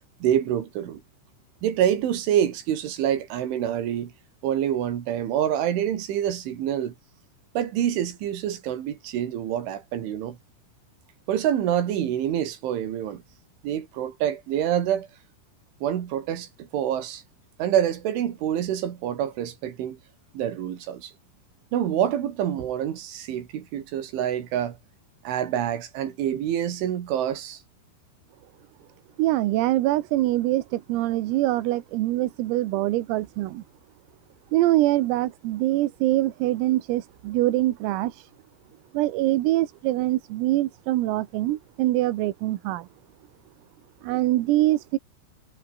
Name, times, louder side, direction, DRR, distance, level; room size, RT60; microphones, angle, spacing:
voice 1, 0.2-1.0 1.6-4.1 4.4-6.9 7.6-10.4 11.3-13.2 13.6-15.1 15.8-17.2 17.6-20.0 20.3-21.1 21.7-24.8 25.2-27.6, right 10 dB, 70° right, 4.7 m, -26 dB
voice 2, 29.2-33.6 34.5-38.3 38.9-42.9 44.0-45.0, right 16 dB, 85° right, 4.0 m, -24 dB
omnidirectional pair, 5.9 m